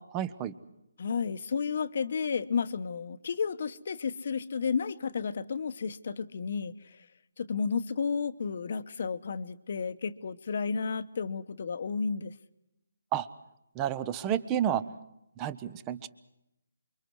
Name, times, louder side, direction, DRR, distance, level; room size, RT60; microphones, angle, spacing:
voice 1, 0.1-0.5 13.1-13.3 13.7-14.8 15.4-16.1, right 10 dB, 15° right, 15 dB, 0.9 m, -30 dB
voice 2, 1.0-7.0 7.4-12.3, left 5 dB, 50° left, 12 dB, 1.1 m, -32 dB
29.0 x 23.5 x 4.8 m, 0.86 s
hypercardioid pair, 165°, 0 cm